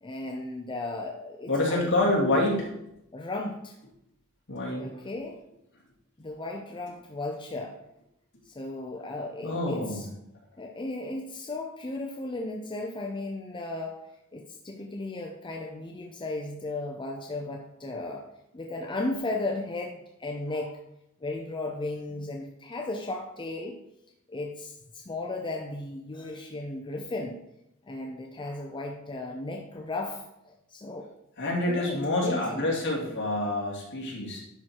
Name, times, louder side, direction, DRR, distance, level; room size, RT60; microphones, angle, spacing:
voice 1, 0.0-1.9 3.1-3.8 4.8-5.4 6.2-7.8 8.5-10.1 10.6-14.0 14.3-18.2 18.5-20.8 21.2-23.8 24.3-27.4 27.9-31.1 31.7-32.7, left 2 dB, 20° left, 1 dB, 0.6 m, -35 dB
voice 2, 1.5-2.8 4.5-4.9 9.4-10.1 31.4-34.4, left 1 dB, 60° left, -2 dB, 2.5 m, -27 dB
10.5 x 4.4 x 4.6 m, 0.83 s
head